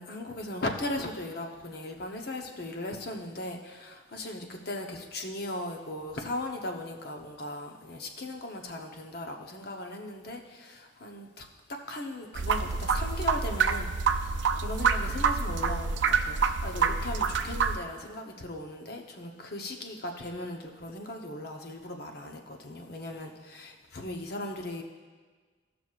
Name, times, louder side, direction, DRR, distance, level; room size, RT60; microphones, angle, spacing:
voice 1, 0.0-24.8, left 1 dB, 50° left, 3 dB, 0.9 m, -38 dB
sound 1, 12.3-17.8, right 5 dB, 65° right, 0.5 m, -27 dB
17.0 x 6.0 x 2.4 m, 1.4 s
head